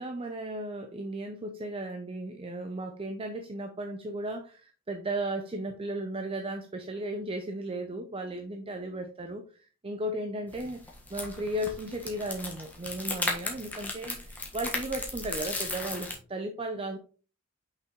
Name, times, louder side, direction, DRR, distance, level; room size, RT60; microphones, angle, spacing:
voice 1, 0.0-17.0, right 1 dB, 25° right, 5 dB, 0.6 m, -35 dB
sound 1, 10.5-16.2, left 2 dB, 10° left, 1.4 m, -36 dB
6.0 x 5.9 x 3.0 m, 0.37 s
head